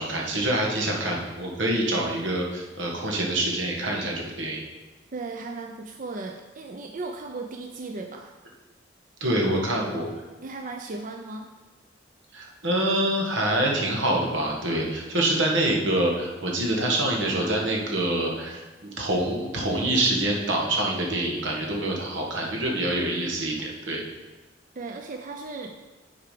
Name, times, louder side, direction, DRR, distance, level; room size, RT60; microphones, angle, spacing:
voice 1, 0.0-4.6 9.2-10.0 12.3-24.0, right 1 dB, 90° right, -1 dB, 1.6 m, -26 dB
voice 2, 5.1-8.4 10.4-11.5 24.8-25.7, right 3 dB, 45° right, 3 dB, 0.5 m, -36 dB
8.9 x 4.8 x 5.0 m, 1.3 s
head